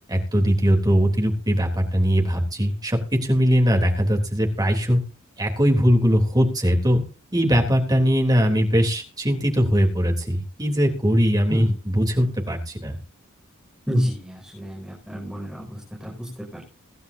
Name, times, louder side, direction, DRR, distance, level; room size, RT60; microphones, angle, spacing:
voice 1, 0.1-5.0 5.4-7.0 7.3-12.9, equal, 20° right, 2 dB, 3.4 m, -20 dB
voice 2, 13.9-16.7, equal, 5° right, -3 dB, 5.9 m, -29 dB
23.5 x 12.0 x 2.8 m, 0.34 s
head